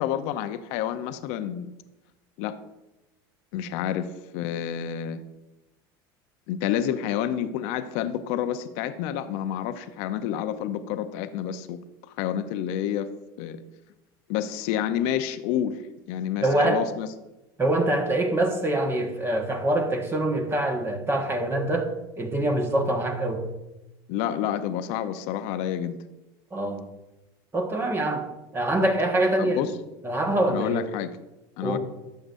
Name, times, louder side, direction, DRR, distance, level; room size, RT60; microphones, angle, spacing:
voice 1, 0.0-1.7 2.4-2.6 3.5-5.2 6.5-11.8 12.2-13.1 13.4-13.6 14.3-15.8 16.1-17.1 24.1-26.0 29.4-29.7 30.5-31.2 31.6-31.8, left 10 dB, 65° left, 10 dB, 0.6 m, -29 dB
voice 2, 16.4-16.9 17.6-21.9 22.2-23.4 26.5-26.9 27.5-28.3 28.5-29.6 30.0-30.8 31.6-31.8, right 1 dB, 20° right, 4 dB, 1.3 m, -24 dB
12.0 x 7.8 x 2.6 m, 0.98 s
supercardioid pair, 110°, 12 cm